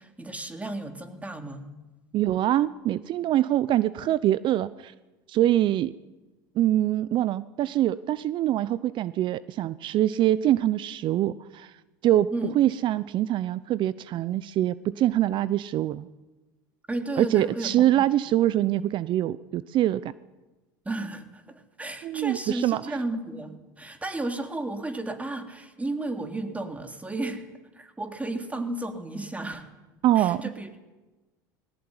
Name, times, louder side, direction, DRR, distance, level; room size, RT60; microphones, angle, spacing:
voice 1, 0.0-1.7 12.3-12.6 16.9-18.0 20.9-27.5 27.7-29.7 30.2-30.8, right 2 dB, 15° right, 6 dB, 3.3 m, -33 dB
voice 2, 2.1-4.9 5.3-5.9 6.6-11.7 12.0-12.3 12.6-16.1 17.2-20.1 22.0-22.8 30.0-30.4, right 13 dB, 50° right, 18 dB, 0.7 m, -24 dB
19.5 x 18.0 x 9.8 m, 1.1 s
hypercardioid pair, 80°, 11 cm